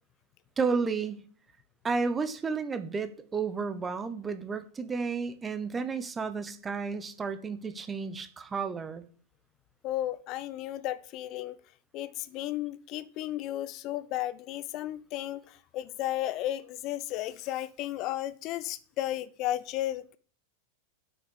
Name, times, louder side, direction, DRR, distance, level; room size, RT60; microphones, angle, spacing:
voice 1, 0.6-1.2 1.8-9.0, right 5 dB, 15° right, 11 dB, 1.1 m, -32 dB
voice 2, 9.8-11.6 11.9-20.2, left 14 dB, 40° left, 16 dB, 0.7 m, -34 dB
8.6 x 5.9 x 7.1 m, 0.43 s
figure-of-eight pair, 90°, 0 cm